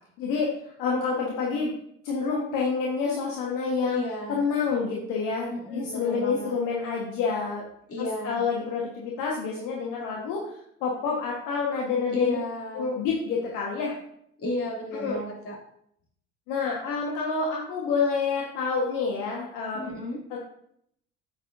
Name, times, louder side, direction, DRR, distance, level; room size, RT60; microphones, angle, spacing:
voice 1, 0.2-1.7 2.0-4.0 4.3-7.7 8.0-10.5 10.8-12.4 12.7-14.0 14.9-15.2 16.5-20.0 20.3-20.4, left 5 dB, 60° left, -2 dB, 1.5 m, -28 dB
voice 2, 3.9-4.4 5.5-6.5 7.9-8.4 12.1-13.0 14.4-15.5 19.8-20.2, left 1 dB, 40° left, -2 dB, 3.0 m, -33 dB
8.4 x 7.9 x 2.7 m, 0.70 s
hypercardioid pair, 65°, 36 cm